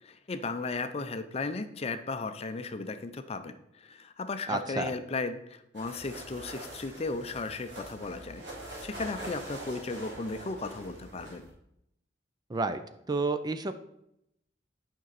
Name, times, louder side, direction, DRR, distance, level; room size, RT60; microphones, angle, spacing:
voice 1, 0.0-8.4 8.8-11.5, left 3 dB, 35° left, 10 dB, 0.5 m, -35 dB
voice 2, 4.5-4.9 12.5-12.8 13.1-13.7, right 3 dB, 25° right, 10 dB, 0.4 m, -30 dB
sound 1, 5.7-11.5, right 1 dB, 90° right, 2.7 m, -44 dB
9.0 x 5.4 x 4.0 m, 0.79 s
head